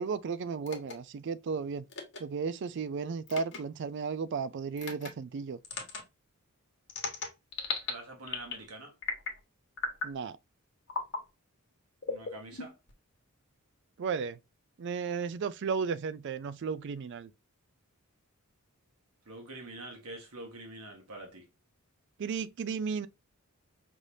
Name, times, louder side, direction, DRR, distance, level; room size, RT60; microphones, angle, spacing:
voice 1, 0.0-1.8 2.2-5.6 10.0-10.4 14.0-14.4 14.8-17.3 22.2-23.1, right 5 dB, 55° right, 0.3 m, -34 dB
sound 1, 0.6-0.9 1.9-2.2 3.3-3.6 4.8-5.1 5.6-6.0 6.9-7.9 8.3-8.6 9.0-9.4 9.8-10.1 10.9-11.2 12.0-12.9, left 4 dB, 55° left, 1.3 m, -36 dB
voice 2, 7.9-8.9 12.1-12.7 19.2-21.5, right 2 dB, 80° right, 1.4 m, -45 dB
5.3 x 3.2 x 2.6 m
head